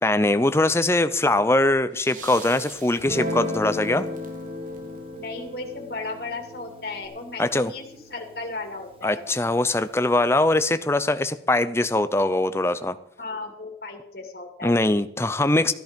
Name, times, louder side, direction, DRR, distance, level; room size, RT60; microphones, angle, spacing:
voice 1, 0.0-4.1 7.4-7.7 9.0-13.0 14.6-15.7, left 2 dB, 15° left, 12 dB, 0.6 m, -22 dB
sound 1, 1.9-5.9 7.0-7.1, right 4 dB, 45° right, 1.6 m, -46 dB
Guitar, 3.0-9.6, left 1 dB, 30° right, 2.4 m, -35 dB
voice 2, 5.1-7.8 8.1-9.2 13.2-14.8, left 3 dB, 60° left, 2 dB, 2.3 m, -35 dB
14.5 x 11.0 x 5.2 m, 0.71 s
head